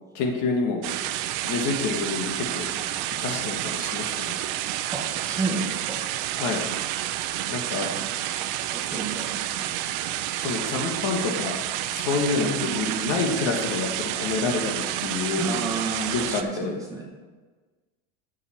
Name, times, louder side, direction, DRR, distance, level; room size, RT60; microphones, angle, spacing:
voice 1, 0.1-0.9 1.4-2.7 3.2-4.3 6.3-6.6 7.5-7.9 10.4-11.6 11.9-15.5 16.1-16.8, left 4 dB, 50° left, 2 dB, 1.7 m, -28 dB
sound 1, 0.8-16.4, right 13 dB, 55° right, 0.7 m, -29 dB
voice 2, 4.9-6.0 8.7-9.7 12.4-13.2 15.4-17.0, right 3 dB, 10° right, -2 dB, 2.0 m, -31 dB
9.7 x 7.3 x 4.5 m, 1.3 s
supercardioid pair, 120°, 38 cm